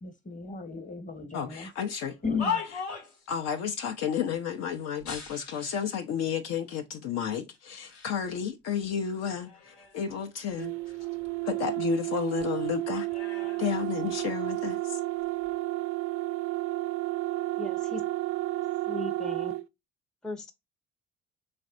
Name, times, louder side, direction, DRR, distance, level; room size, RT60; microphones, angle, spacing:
voice 1, 0.0-1.7 2.2-2.6, left 5 dB, 25° left, 1.1 m, -34 dB
voice 2, 1.3-2.2 2.7-2.8 3.3-10.7 11.4-13.1 13.6-15.0, left 8 dB, 55° left, 0.6 m, -32 dB
sound 1, 2.0-3.3 5.0-5.9 6.7-6.8 7.5-8.2 8.6-10.1 10.5-12.1 12.4-14.5 15.3-15.6, left 6 dB, 80° left, 1.0 m, -39 dB
sound 2, 10.6-19.6, right 19 dB, 45° right, 0.5 m, -32 dB
voice 3, 17.6-18.0 18.9-19.5 20.2-20.5, left 2 dB, ahead, 0.5 m, -37 dB
4.0 x 3.2 x 2.4 m
figure-of-eight pair, 50°, 32 cm